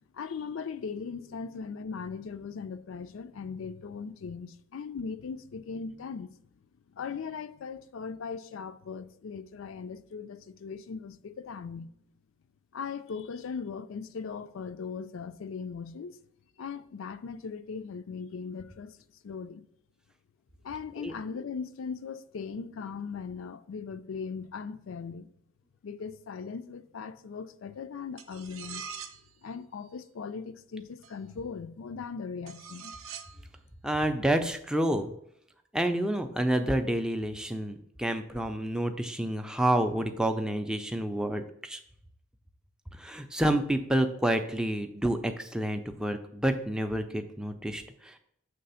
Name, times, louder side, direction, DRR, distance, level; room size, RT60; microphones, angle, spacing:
voice 1, 0.1-6.3 6.9-11.9 12.7-16.2 16.6-19.0 19.2-19.6 20.6-25.3 25.8-29.0 29.4-32.9, left 5 dB, 65° left, 0.4 m, -39 dB
sound 1, 28.2-29.3 31.0-31.1 32.5-33.4, right 6 dB, 75° right, 0.5 m, -43 dB
voice 2, 33.8-35.1 35.7-41.8 43.0-48.2, right 1 dB, 5° right, 0.4 m, -29 dB
6.7 x 3.3 x 5.5 m
head